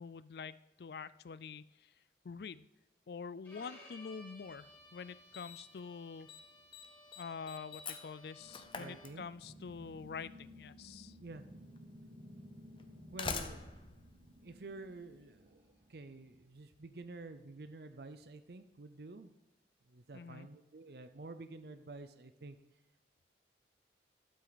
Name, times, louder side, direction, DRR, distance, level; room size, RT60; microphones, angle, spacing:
voice 1, 0.0-1.9 2.2-2.7 3.1-6.3 7.2-11.1 20.1-20.5, left 5 dB, 60° left, 17 dB, 0.4 m, -46 dB
Bowed string instrument, 3.4-9.3, left 1 dB, 10° left, 2.5 m, -58 dB
Slam, 4.5-4.6 5.3-5.8 6.1-6.4 6.7-9.7 10.8-10.9 11.8-11.9 12.8-15.1, left 5 dB, 30° left, 0.7 m, -45 dB
sound 1, 8.4-16.2, equal, 35° right, 1.4 m, -56 dB
voice 2, 8.8-9.2 11.2-11.4 13.1-13.8 14.4-15.6 15.9-19.3 19.9-22.6, right 3 dB, 60° right, 9 dB, 0.6 m, -49 dB
12.0 x 7.6 x 4.1 m, 1.0 s
head